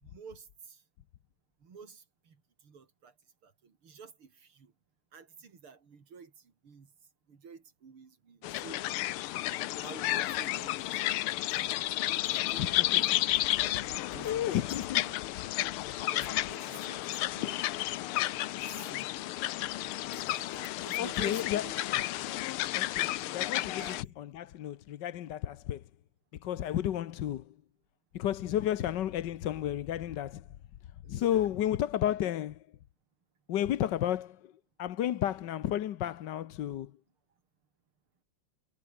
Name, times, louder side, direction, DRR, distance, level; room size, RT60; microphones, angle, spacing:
voice 1, 0.0-0.8 1.6-2.4 2.6-3.1 3.4-4.7 5.1-6.9 7.3-8.9 9.8-11.4 12.3-13.5 14.1-15.1 15.5-17.7 18.8-19.3 20.2-22.0 23.8-24.0 26.6-26.8 31.0-31.7 32.2-32.4, right 5 dB, 75° right, 3.9 m, -51 dB
sound 1, 8.4-24.0, left 15 dB, 80° left, 1.6 m, -32 dB
voice 2, 12.6-13.0 13.7-15.0 21.0-21.6 22.7-23.1 23.3-25.8 26.4-27.4 28.1-30.4 31.1-32.5 33.5-34.4 34.8-36.9, left 11 dB, 60° left, 1.4 m, -32 dB
omnidirectional pair, 2.4 m